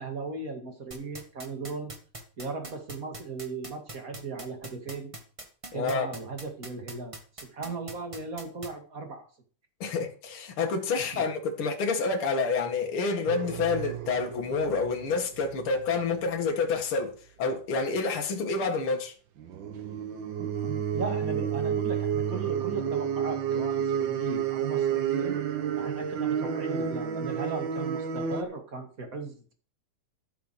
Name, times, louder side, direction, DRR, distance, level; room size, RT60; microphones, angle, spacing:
voice 1, 0.0-1.9 2.4-5.1 5.7-9.3 11.0-11.2 20.4-25.4 25.8-29.5, right 4 dB, 30° right, 2.4 m, -37 dB
sound 1, 0.9-8.7, right 2 dB, 45° right, 0.4 m, -41 dB
voice 2, 5.7-6.1 9.8-17.1 17.4-19.1, left 4 dB, 45° left, 2.6 m, -28 dB
sound 2, 13.3-16.2 19.4-28.4, right 8 dB, 90° right, 1.0 m, -30 dB
13.5 x 8.1 x 4.9 m
omnidirectional pair, 3.6 m